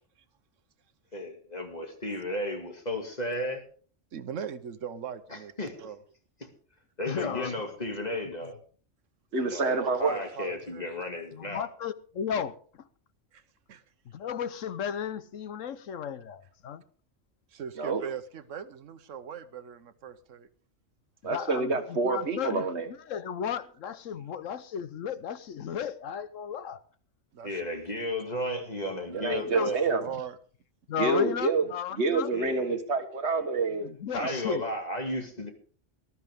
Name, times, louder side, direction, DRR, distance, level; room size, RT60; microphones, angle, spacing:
voice 1, 1.1-3.6 5.3-5.9 6.4-6.5 7.0-8.6 9.3-11.7 27.4-29.8 32.3-32.8 34.1-35.5, left 1 dB, 35° left, 2.4 m, -34 dB
voice 2, 4.1-5.5 5.8-6.0 9.4-11.1 13.3-13.4 13.7-13.8 17.5-20.5 24.1-24.3 27.3-27.6 29.0-30.4, right 7 dB, 80° right, 1.2 m, -40 dB
voice 3, 7.1-7.5 11.3-12.6 14.1-16.8 21.3-22.6 23.1-26.8 29.5-29.7 30.9-32.3 33.8-34.6, left 8 dB, 90° left, 1.2 m, -34 dB
voice 4, 9.3-10.1 17.7-18.0 21.2-22.9 29.1-30.0 31.0-31.7 31.9-34.6, right 3 dB, 60° right, 1.7 m, -28 dB
19.5 x 12.5 x 3.6 m
omnidirectional pair, 1.3 m